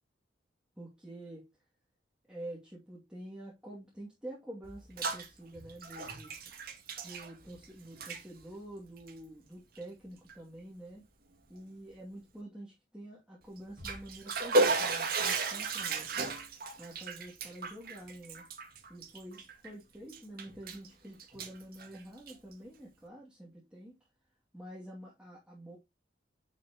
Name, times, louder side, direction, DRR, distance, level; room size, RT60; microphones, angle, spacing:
voice 1, 0.8-1.4 2.3-6.3 7.0-11.0 11.5-16.1 16.8-18.4 18.9-23.9 24.5-25.8, right 1 dB, 5° right, 2.5 m, -47 dB
Bathtub (filling or washing), 4.6-5.3 5.6-7.7 7.9-8.2 9.0-9.1 9.8-9.9 10.3-10.4 13.6-19.7 20.1-20.9 21.2-22.5, right 3 dB, 50° right, 2.2 m, -34 dB
9.6 x 6.1 x 2.9 m
head